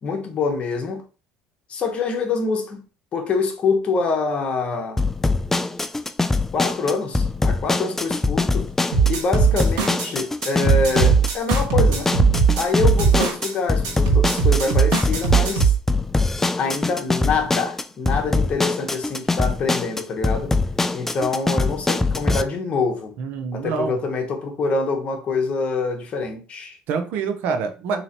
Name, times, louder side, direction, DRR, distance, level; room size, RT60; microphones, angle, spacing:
voice 1, 0.0-1.0 1.7-2.8 3.1-5.0 6.5-8.7 9.1-12.1 12.5-15.7 16.6-20.6 20.9-23.1 23.5-26.8, left 4 dB, 45° left, 1.1 m, -25 dB
sound 1, 5.0-22.4, left 3 dB, 10° left, 0.3 m, -23 dB
sound 2, 8.9-10.1 10.4-13.5 13.8-15.8, right 6 dB, 90° right, 1.2 m, -19 dB
voice 2, 23.2-23.9 26.9-28.0, right 5 dB, 70° right, 0.8 m, -26 dB
3.9 x 3.0 x 2.8 m
supercardioid pair, 100°, 3 cm